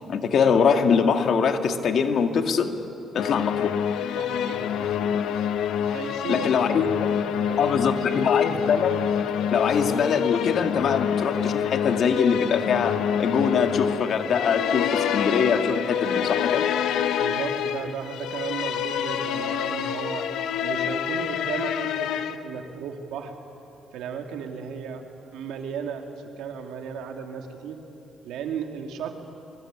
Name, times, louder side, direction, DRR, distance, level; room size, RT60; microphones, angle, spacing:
voice 1, 0.1-2.7 3.1-3.8 6.3-6.9 7.6-9.0 9.5-16.7, left 6 dB, 65° left, 6 dB, 1.9 m, -23 dB
sound 1, 3.2-22.4, left 8 dB, 80° left, 1.0 m, -27 dB
voice 2, 4.1-5.3 5.8-6.9 7.2-8.3 17.2-20.3 20.6-23.3 23.9-25.0 25.3-26.0 26.4-27.8 28.2-29.2, right 7 dB, 85° right, 4 dB, 2.4 m, -35 dB
24.0 x 23.5 x 9.0 m, 2.9 s
cardioid pair, 90°, 0 cm